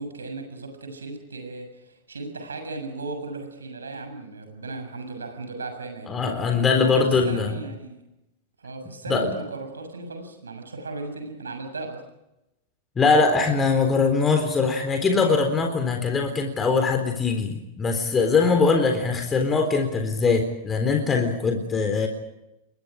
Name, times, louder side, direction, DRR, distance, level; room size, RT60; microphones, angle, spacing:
voice 1, 0.0-6.1 6.8-6.9 7.2-8.0 8.6-12.0, right 3 dB, 75° right, 6 dB, 7.0 m, -36 dB
voice 2, 6.1-7.6 9.1-9.3 13.0-22.1, left 4 dB, 20° left, 5 dB, 3.8 m, -22 dB
30.0 x 23.0 x 5.1 m, 0.89 s
figure-of-eight pair, 90°, 0 cm